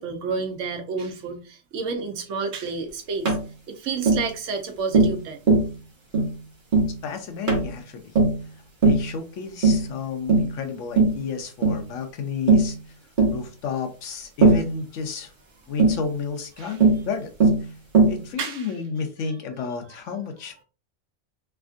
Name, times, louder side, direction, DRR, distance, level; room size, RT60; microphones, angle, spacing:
voice 1, 0.0-3.4 3.7-5.4 16.6-16.8 18.4-18.7, right 4 dB, 80° right, 5 dB, 1.1 m, -30 dB
Tap, 3.2-3.4 4.1-4.3 4.9-5.2 5.5-5.7 6.1-6.3 6.7-6.9 7.5-7.7 8.1-8.4 8.8-9.1 9.6-9.9 10.3-10.5 11.0-11.2 11.6-11.8 12.5-12.7 13.2-13.4 14.4-14.7 15.8-16.0 16.8-17.0 17.4-17.6 17.9-18.2, right 3 dB, 45° right, 1.1 m, -18 dB
voice 2, 7.0-8.1 8.8-12.8 13.3-15.3 15.7-17.3 18.1-20.6, left 5 dB, 90° left, 5 dB, 1.0 m, -31 dB
3.5 x 2.5 x 2.4 m, 0.35 s
omnidirectional pair, 1.3 m